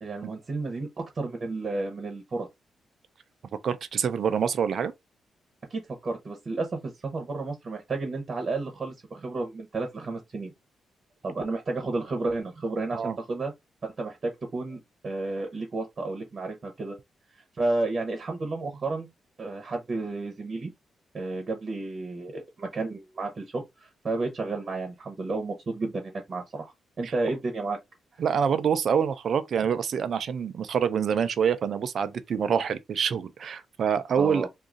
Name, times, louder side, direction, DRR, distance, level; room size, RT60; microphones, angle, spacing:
voice 1, 0.0-2.5 5.7-10.5 11.2-13.5 13.8-17.0 17.6-19.1 19.4-20.7 21.1-27.8 34.2-34.5, right 3 dB, 50° right, 1.0 m, -32 dB
voice 2, 3.6-4.9 12.9-13.2 27.0-27.1 28.2-34.5, right 7 dB, 65° right, 0.4 m, -26 dB
2.6 x 2.4 x 3.8 m
supercardioid pair, 50°, 0 cm